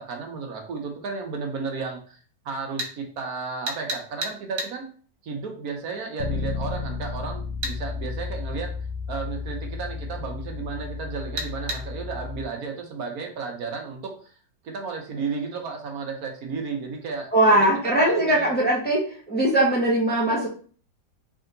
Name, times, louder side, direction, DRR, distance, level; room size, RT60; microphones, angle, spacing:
voice 1, 0.0-2.2 2.4-4.9 5.2-8.7 9.1-14.3 14.6-17.7 18.0-18.5, right 5 dB, 60° right, 2 dB, 1.2 m, -33 dB
sound 1, 2.8-2.9 3.7-4.7 7.6-7.8 11.4-11.8, right 2 dB, 75° right, 1.8 m, -30 dB
Bass guitar, 6.2-12.4, left 5 dB, 70° left, 1.0 m, -33 dB
voice 2, 17.3-20.5, right 1 dB, 10° left, -3 dB, 0.7 m, -20 dB
3.6 x 3.5 x 3.8 m, 0.43 s
omnidirectional pair, 2.0 m